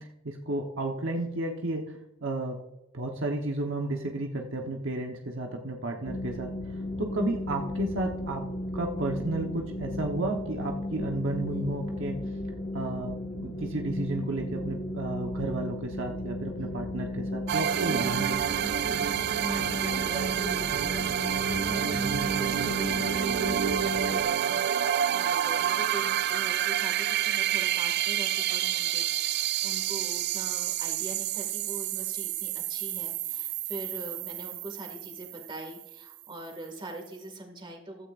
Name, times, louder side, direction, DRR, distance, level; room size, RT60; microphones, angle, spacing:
voice 1, 0.2-1.8 2.2-2.6 2.9-6.5 7.0-8.4 8.7-12.2 12.7-18.4, right 2 dB, 70° right, 2 dB, 1.1 m, -32 dB
sound 1, 6.0-24.2, left 1 dB, 30° left, 1.4 m, -35 dB
sound 2, 17.5-35.9, right 10 dB, 55° right, 0.3 m, -29 dB
voice 2, 19.4-38.1, right 1 dB, 25° right, 4 dB, 2.1 m, -43 dB
15.0 x 12.5 x 2.6 m, 0.98 s
head